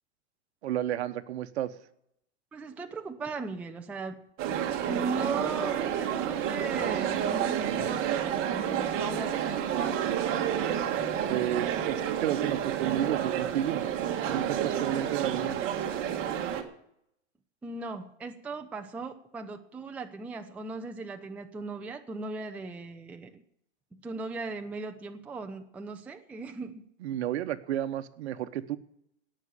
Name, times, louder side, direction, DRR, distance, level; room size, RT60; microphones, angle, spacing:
voice 1, 0.6-1.7 11.3-13.8 14.3-15.6 27.0-28.8, right 12 dB, 65° right, 11 dB, 1.1 m, -31 dB
voice 2, 2.5-4.3 4.9-9.7 17.6-23.4 23.9-26.9, right 4 dB, 5° right, 5 dB, 0.5 m, -38 dB
sound 1, 4.4-16.6, right 9 dB, 35° right, 1.8 m, -30 dB
17.5 x 6.4 x 8.4 m, 0.75 s
hypercardioid pair, 135°, 36 cm